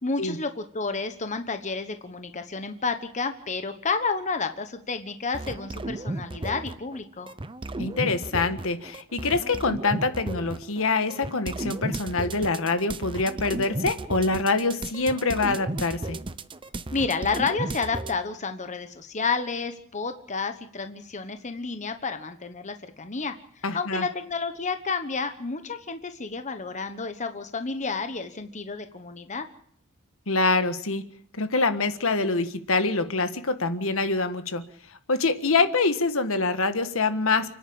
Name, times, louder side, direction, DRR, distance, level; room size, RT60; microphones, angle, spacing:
voice 1, 0.0-7.3 16.9-23.3 23.7-29.5, left 4 dB, 35° left, 8 dB, 1.2 m, -30 dB
sound 1, 5.3-7.0 7.3-18.1, right 2 dB, 25° right, 0.8 m, -34 dB
voice 2, 7.8-16.2 23.6-24.0 30.3-31.0 31.4-34.6 35.1-37.5, left 3 dB, 65° left, 9 dB, 1.6 m, -25 dB
29.5 x 10.5 x 8.8 m, 0.62 s
head